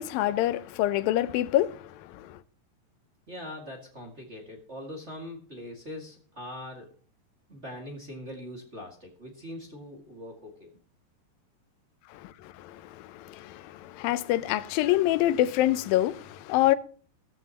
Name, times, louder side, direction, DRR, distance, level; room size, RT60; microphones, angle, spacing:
voice 1, 0.0-2.4 12.1-16.8, left 14 dB, 90° left, 2.5 m, -26 dB
voice 2, 3.3-6.9 7.5-10.7, left 1 dB, 25° right, 1.8 m, -42 dB
16.0 x 13.5 x 2.9 m
omnidirectional pair, 4.0 m